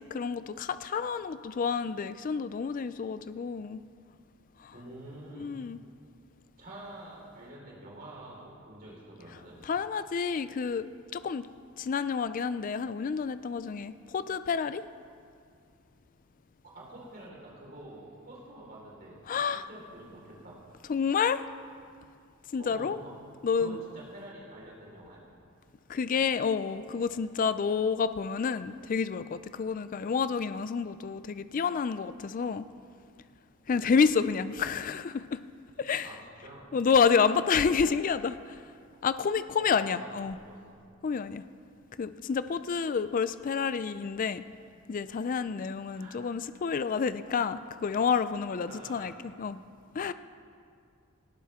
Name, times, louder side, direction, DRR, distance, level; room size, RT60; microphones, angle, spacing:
voice 1, 0.0-3.8 4.6-4.7 5.3-5.8 9.6-11.5 11.8-14.8 19.3-19.7 20.9-21.4 22.5-23.0 23.4-23.8 25.9-32.7 33.7-35.4 35.8-36.1 36.7-38.6 39.0-40.4 41.0-41.4 42.0-44.4 44.9-49.6 49.9-50.1, left 6 dB, 40° left, 13 dB, 0.3 m, -29 dB
voice 2, 4.7-5.5 6.6-9.6 16.7-19.2 19.5-20.5 22.6-23.1 23.6-25.2 33.7-33.9 36.0-36.6 37.7-38.0 39.6-40.1 40.5-40.7 45.9-46.2 48.6-49.1, right 1 dB, 45° right, -5 dB, 4.4 m, -47 dB
18.5 x 16.5 x 3.6 m, 2.3 s
head